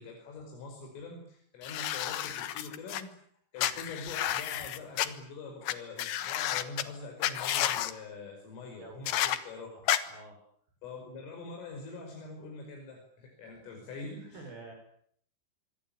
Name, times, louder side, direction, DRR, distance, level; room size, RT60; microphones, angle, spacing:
voice 1, 0.0-3.1 3.5-9.7 10.8-14.4, left 3 dB, 80° left, 2 dB, 7.9 m, -44 dB
sound 1, 1.6-3.0 3.6-5.1 5.7-5.8 6.0-6.8 7.2-7.9 9.1-9.4 9.9-10.0, left 12 dB, 65° left, 2.7 m, -31 dB
voice 2, 9.7-10.4 14.2-14.7, right 3 dB, 50° right, 5 dB, 7.7 m, -49 dB
26.0 x 23.5 x 9.0 m, 0.65 s
omnidirectional pair, 5.7 m